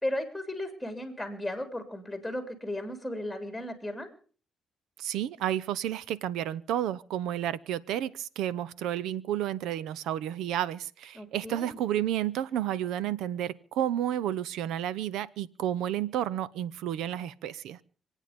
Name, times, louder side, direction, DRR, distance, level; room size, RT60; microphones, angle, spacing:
voice 1, 0.0-4.1 11.1-11.8, left 1 dB, ahead, 3.1 m, -35 dB
voice 2, 5.0-17.8, right 11 dB, 90° right, 0.6 m, -31 dB
26.5 x 9.1 x 5.2 m
cardioid pair, 90°, 0 cm